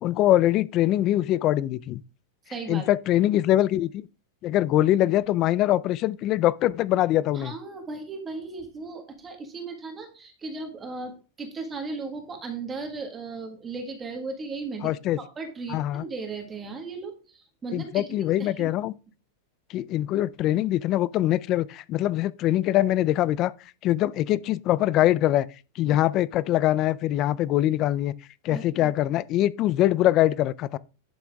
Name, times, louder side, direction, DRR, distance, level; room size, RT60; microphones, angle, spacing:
voice 1, 0.0-2.0 2.7-4.0 4.4-7.5 14.8-15.2 15.7-16.0 17.7-18.9 19.7-23.5 23.8-25.5 25.8-28.1 28.4-30.8, left 14 dB, 25° left, 0.3 m, -23 dB
voice 2, 2.5-2.8 7.3-14.9 15.2-18.7 28.5-28.9, right 4 dB, 10° right, 1.6 m, -36 dB
11.0 x 6.1 x 3.5 m
supercardioid pair, 180°, 0 cm